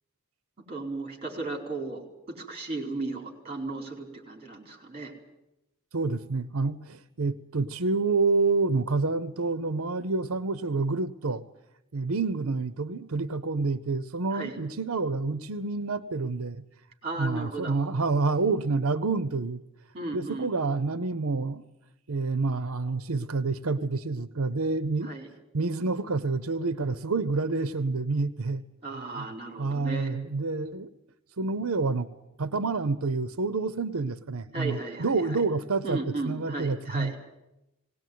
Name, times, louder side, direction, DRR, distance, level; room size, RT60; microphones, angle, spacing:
voice 1, 0.6-5.1 14.3-14.6 17.0-17.8 19.9-20.5 25.0-25.3 28.8-30.1 34.5-35.1 35.8-37.2, right 2 dB, 30° right, 2 dB, 4.3 m, -35 dB
voice 2, 5.9-11.4 11.9-16.6 17.2-19.6 20.1-21.6 22.1-25.1 25.5-28.6 29.2-29.3 29.6-30.9 31.4-32.1 32.4-37.1, right 3 dB, 85° right, 12 dB, 0.8 m, -28 dB
19.0 x 18.5 x 9.4 m, 0.91 s
head